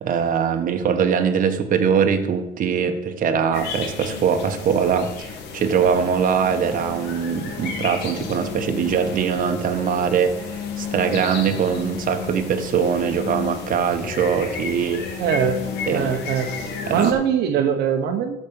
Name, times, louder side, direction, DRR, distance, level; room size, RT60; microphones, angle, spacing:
voice 1, 0.0-10.5 10.8-15.0 15.9-16.1 16.9-17.1, right 7 dB, 55° right, 6 dB, 1.4 m, -22 dB
sound 1, 3.5-17.1, left 6 dB, 85° left, 1.8 m, -32 dB
voice 2, 15.2-15.6 15.9-16.5 16.9-18.4, right 8 dB, 75° right, 5 dB, 1.1 m, -21 dB
13.0 x 5.3 x 7.0 m, 0.89 s
cardioid pair, 110°, 17 cm